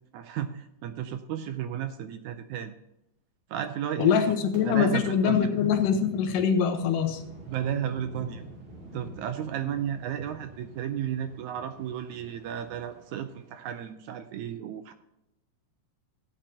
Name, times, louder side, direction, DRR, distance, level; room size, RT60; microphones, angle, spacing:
voice 1, 0.1-2.7 3.5-4.4 4.7-5.5 7.5-8.4 8.9-14.9, right 9 dB, 80° right, 9 dB, 1.8 m, -33 dB
voice 2, 4.0-7.2, left 7 dB, 80° left, 6 dB, 2.6 m, -24 dB
sound 1, 4.5-13.9, right 1 dB, 65° right, 3.9 m, -49 dB
15.5 x 8.7 x 2.8 m, 0.86 s
omnidirectional pair, 3.8 m